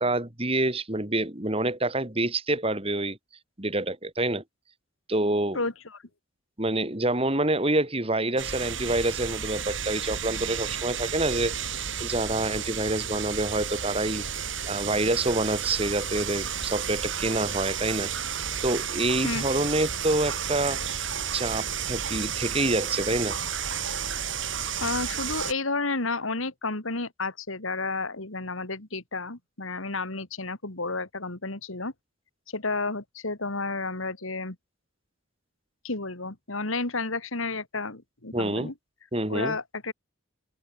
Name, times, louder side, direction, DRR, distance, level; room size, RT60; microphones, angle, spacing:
voice 1, 0.0-3.2 3.6-4.4 5.1-5.6 6.6-18.1 18.6-23.4 38.3-38.7 39.1-39.6, right 2 dB, 30° right, 2.9 m, -27 dB
sound 1, 8.4-25.5, right 8 dB, 65° right, 6.7 m, -32 dB
voice 2, 24.8-31.9 32.5-34.6 35.8-38.7 39.3-39.9, left 3 dB, 85° left, 3.1 m, -31 dB
open air
head